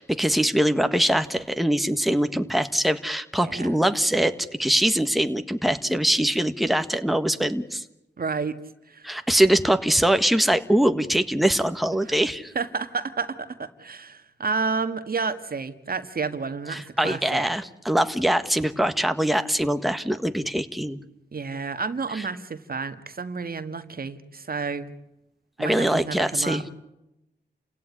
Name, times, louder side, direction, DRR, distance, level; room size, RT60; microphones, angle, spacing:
voice 1, 0.0-7.8 9.0-12.5 16.7-21.0 22.1-22.2 25.6-26.6, right 1 dB, ahead, 9 dB, 1.6 m, -23 dB
voice 2, 8.2-8.5 8.9-9.1 12.1-12.2 12.6-17.5 21.3-24.9 25.6-26.6, right 4 dB, 55° right, 10 dB, 1.7 m, -30 dB
29.5 x 17.0 x 10.0 m, 0.90 s
cardioid pair, 55°, 18 cm